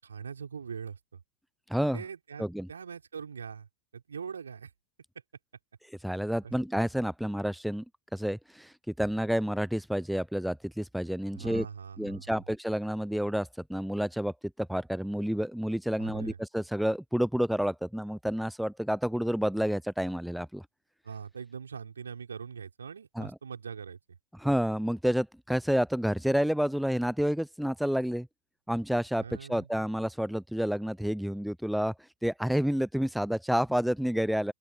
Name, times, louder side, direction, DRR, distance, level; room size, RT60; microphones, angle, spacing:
voice 1, 0.0-1.2 1.9-4.7 6.4-6.5 11.3-12.3 16.0-16.4 21.0-24.2 29.2-29.7, right 6 dB, 70° right, 5.4 m, -42 dB
voice 2, 1.7-2.0 2.4-2.7 6.0-7.8 8.1-11.7 12.0-20.6 23.2-23.3 24.4-28.3 28.7-31.9 32.2-34.5, equal, ahead, 0.6 m, -29 dB
open air
figure-of-eight pair, 90°, 0 cm